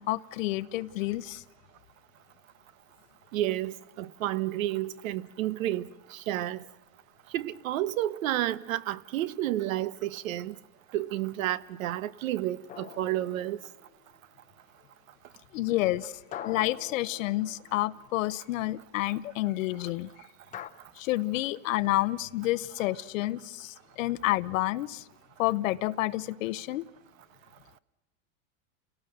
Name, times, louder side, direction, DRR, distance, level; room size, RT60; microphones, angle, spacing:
voice 1, 0.0-1.4 15.5-16.2 16.4-20.1 21.0-25.0 25.4-26.8, left 17 dB, 75° left, 0.7 m, -29 dB
voice 2, 3.3-5.8 6.1-6.6 7.3-10.5 10.9-13.6, right 14 dB, 80° right, 1.0 m, -31 dB
sound 1, 12.7-13.9 16.3-18.0 20.5-20.7, left 10 dB, 20° left, 0.7 m, -44 dB
30.0 x 18.0 x 6.6 m
supercardioid pair, 145°, 40 cm